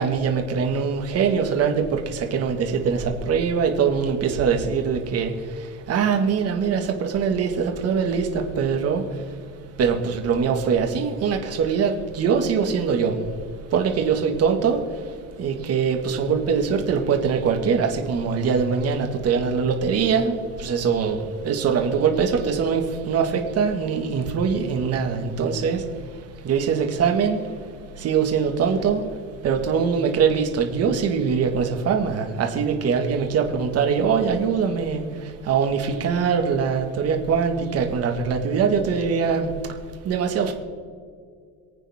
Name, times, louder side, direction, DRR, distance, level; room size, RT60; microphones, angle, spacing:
voice 1, 0.0-5.6 5.9-9.3 9.8-13.3 13.7-29.0 29.4-39.7 40.0-40.5, right 6 dB, 45° right, 4 dB, 2.0 m, -23 dB
27.0 x 9.1 x 3.7 m, 2.1 s
cardioid pair, 155°, 35 cm